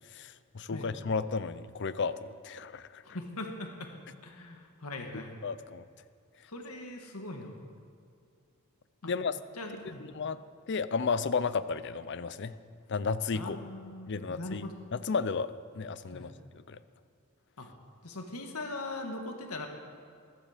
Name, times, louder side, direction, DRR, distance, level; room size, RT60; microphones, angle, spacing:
voice 1, 0.1-3.0 5.4-5.8 9.0-9.4 10.1-10.4 10.7-12.6 12.9-13.6 14.1-14.6 14.9-16.8, left 5 dB, 55° left, 14 dB, 0.6 m, -33 dB
voice 2, 3.0-3.9 4.2-5.4 6.5-7.6 9.0-9.1 9.6-10.1 13.3-14.7 16.1-16.3 17.6-17.7 18.0-19.7, left 2 dB, 85° left, 3 dB, 1.6 m, -40 dB
14.5 x 14.0 x 5.0 m, 2.4 s
head